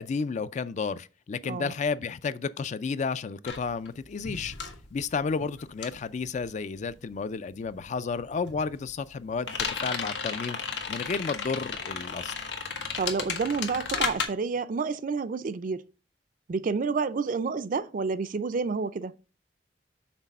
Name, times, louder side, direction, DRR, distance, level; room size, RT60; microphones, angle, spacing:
voice 1, 0.0-4.5 4.9-9.6 9.8-10.6 10.9-12.3, left 5 dB, 45° left, 0.4 m, -32 dB
voice 2, 1.4-1.7 13.0-15.8 16.5-19.1, right 4 dB, 50° right, 0.4 m, -29 dB
sound 1, 3.4-7.3 7.5-14.3, left 5 dB, 90° left, 1.1 m, -34 dB
6.0 x 4.1 x 5.3 m
head